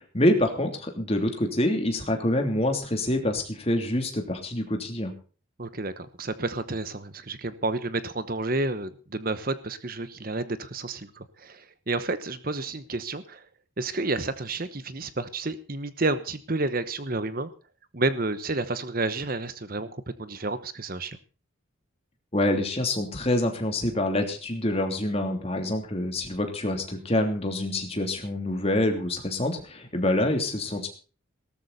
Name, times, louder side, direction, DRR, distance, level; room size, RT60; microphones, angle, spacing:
voice 1, 0.0-5.1 22.3-30.9, left 1 dB, 30° left, 4 dB, 3.1 m, -26 dB
voice 2, 5.6-13.4 13.8-17.5 17.9-19.9 20.2-21.2, right 2 dB, 45° right, 12 dB, 1.0 m, -30 dB
18.5 x 13.5 x 4.2 m, 0.38 s
head